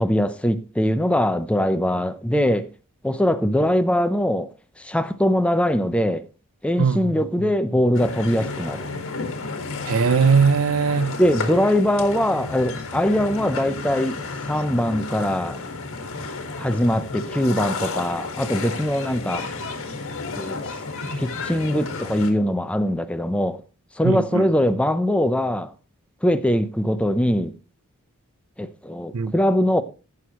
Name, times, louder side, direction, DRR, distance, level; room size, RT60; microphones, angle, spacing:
voice 1, 0.0-2.7 3.0-4.5 4.8-6.2 6.6-8.9 11.2-14.1 14.4-15.6 16.6-19.5 20.4-20.6 21.2-23.6 24.0-25.7 26.2-27.5 28.6-29.8, equal, 5° left, 0.6 m, -22 dB
voice 2, 6.8-7.1 9.9-11.2 24.0-24.5 29.1-29.3, right 5 dB, 65° right, 0.5 m, -20 dB
sound 1, 7.9-22.3, left 3 dB, 65° left, 1.8 m, -32 dB
15.5 x 6.4 x 3.0 m
head